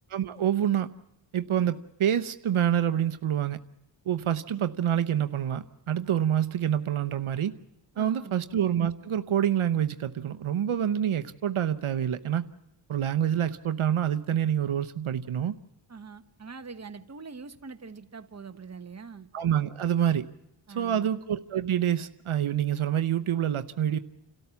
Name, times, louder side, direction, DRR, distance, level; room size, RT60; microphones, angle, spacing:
voice 1, 0.1-0.9 1.3-3.6 4.1-7.5 8.0-12.4 12.9-15.5 19.3-20.3 20.7-24.0, right 10 dB, 75° right, 0.9 m, -27 dB
voice 2, 7.9-8.4 15.9-19.3 20.7-21.1, right 5 dB, 30° right, 1.2 m, -43 dB
30.0 x 13.5 x 7.0 m
wide cardioid pair, 85°, 50 cm